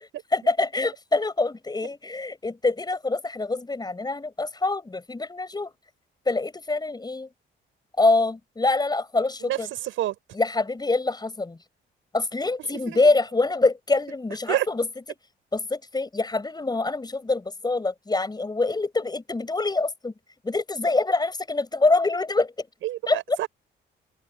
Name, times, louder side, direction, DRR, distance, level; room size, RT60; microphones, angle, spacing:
voice 1, 0.3-5.7 6.3-7.3 8.0-9.7 10.3-11.6 12.1-14.9 15.5-20.1 20.4-22.7 23.1-23.4, left 3 dB, 20° left, 5.9 m, -25 dB
voice 2, 9.4-10.2 12.6-13.0 14.5-14.7 22.8-23.5, right 13 dB, 85° right, 5.9 m, -28 dB
cardioid pair, 90°, 20 cm